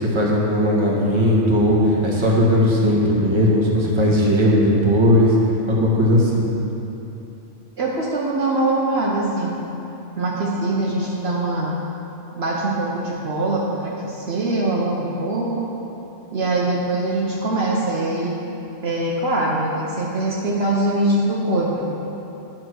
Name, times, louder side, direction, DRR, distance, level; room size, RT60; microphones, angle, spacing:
voice 1, 0.0-5.3 5.7-6.4, equal, 25° right, -4 dB, 1.3 m, -17 dB
voice 2, 7.8-9.6 10.2-11.8 12.3-15.7 16.3-18.4 18.8-22.0, right 2 dB, 60° right, -4 dB, 1.1 m, -23 dB
10.0 x 4.4 x 6.2 m, 2.9 s
omnidirectional pair, 1.3 m